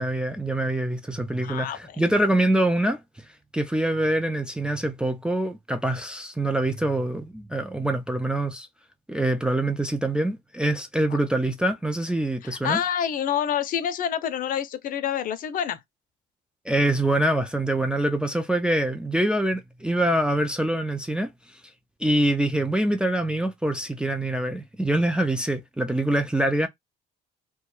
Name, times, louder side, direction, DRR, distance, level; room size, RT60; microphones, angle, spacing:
voice 1, 0.0-3.0 3.5-8.7 9.1-12.8 16.7-21.3 22.0-26.7, right 1 dB, 5° right, 0.3 m, -24 dB
voice 2, 1.4-2.0 11.1-11.2 12.4-15.8, left 9 dB, 55° left, 0.5 m, -27 dB
2.3 x 2.2 x 3.0 m
cardioid pair, 110°, 17 cm